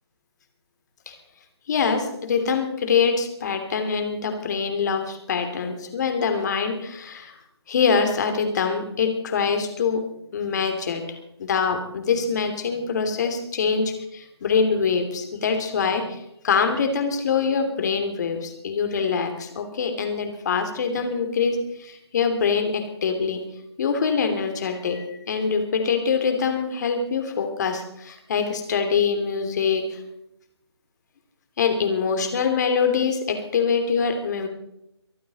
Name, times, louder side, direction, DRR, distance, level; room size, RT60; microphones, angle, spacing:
voice 1, 1.7-7.3 7.7-10.0 10.3-11.0 11.4-23.4 23.8-30.0 31.6-34.5, left 5 dB, 40° left, 6 dB, 2.9 m, -24 dB
23.5 x 13.0 x 4.2 m, 0.82 s
hypercardioid pair, 160°, 14 cm